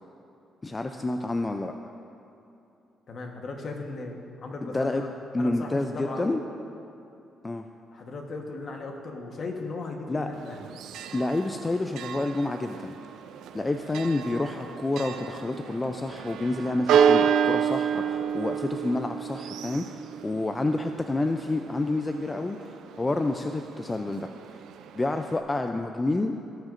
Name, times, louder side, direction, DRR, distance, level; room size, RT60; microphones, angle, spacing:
voice 1, 0.6-1.7 4.6-5.1 5.3-6.4 7.4-7.6 10.1-10.3 11.1-13.0 13.5-24.3 24.9-26.3, left 2 dB, 20° left, 6 dB, 0.4 m, -29 dB
voice 2, 3.1-5.1 5.4-6.4 7.9-10.6, left 3 dB, 50° left, 2 dB, 1.2 m, -37 dB
Church bell, 10.3-25.4, right 8 dB, 80° right, 0.4 m, -30 dB
17.5 x 6.2 x 2.6 m, 2.8 s
cardioid pair, 90°, 0 cm